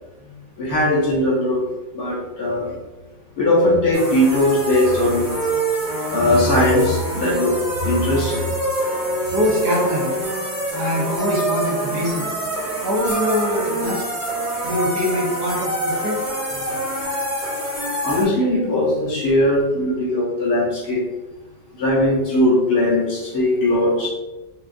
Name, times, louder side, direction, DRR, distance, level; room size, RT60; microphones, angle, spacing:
voice 1, 0.6-1.6 1.9-2.7 3.4-5.3 6.1-8.4 18.0-21.0 21.8-24.1, left 1 dB, 60° left, -5 dB, 1.2 m, -19 dB
sound 1, 3.9-18.2, right 1 dB, 50° right, 1.6 m, -25 dB
voice 2, 9.3-10.1 10.7-12.2 12.8-14.0 14.6-16.2, equal, 65° right, -2 dB, 1.2 m, -23 dB
4.6 x 2.3 x 2.5 m, 1.1 s
omnidirectional pair, 2.1 m